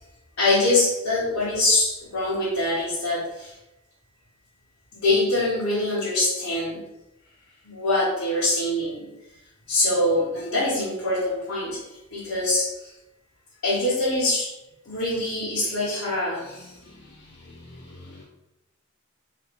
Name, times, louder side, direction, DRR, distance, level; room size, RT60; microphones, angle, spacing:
voice 1, 0.4-3.5 4.9-6.8 7.6-9.1 9.7-11.8 12.1-12.9 13.6-14.5 14.8-16.8, left 2 dB, 75° left, -10 dB, 1.3 m, -24 dB
voice 2, 16.6-18.2, left 2 dB, 50° left, -2 dB, 0.5 m, -47 dB
3.9 x 2.7 x 3.4 m, 0.94 s
head